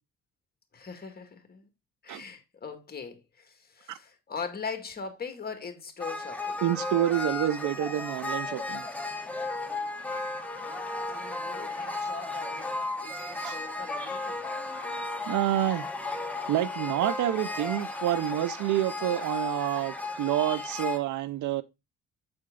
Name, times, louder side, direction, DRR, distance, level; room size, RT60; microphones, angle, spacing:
voice 1, 0.7-1.7 2.0-6.6 11.1-14.5, left 5 dB, 30° left, 1.7 m, -41 dB
sound 1, 6.0-21.0, left 2 dB, 5° left, 1.1 m, -34 dB
voice 2, 6.6-8.8 13.4-13.6 15.3-15.9 16.5-21.6, right 13 dB, 75° right, 0.6 m, -28 dB
7.9 x 4.3 x 3.7 m
cardioid pair, 90°, 30 cm